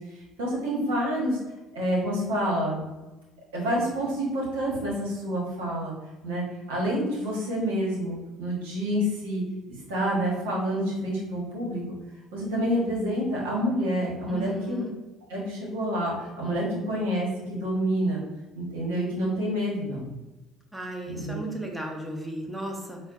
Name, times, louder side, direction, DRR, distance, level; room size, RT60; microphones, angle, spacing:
voice 1, 0.1-1.4 1.7-2.8 3.5-5.9 6.2-11.8 12.3-14.8 15.3-18.2 18.5-20.1 21.1-21.4, equal, 80° right, -4 dB, 1.2 m, -28 dB
voice 2, 14.3-14.9 20.7-23.0, right 2 dB, 10° right, 1 dB, 0.8 m, -35 dB
4.2 x 2.2 x 2.5 m, 1.1 s
hypercardioid pair, 60°, 0 cm